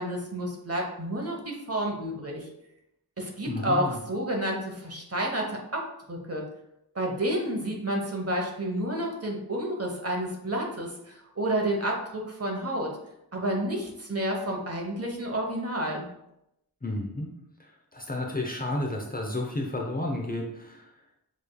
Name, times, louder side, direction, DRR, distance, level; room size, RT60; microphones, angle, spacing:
voice 1, 0.0-2.5 3.2-6.4 6.9-12.9 13.3-16.1, right 1 dB, 35° right, 0 dB, 1.1 m, -30 dB
voice 2, 3.5-4.0 16.8-17.3 17.6-20.9, left 1 dB, 20° left, 0 dB, 0.7 m, -32 dB
7.0 x 3.2 x 2.3 m, 0.82 s
wide cardioid pair, 75°, 40 cm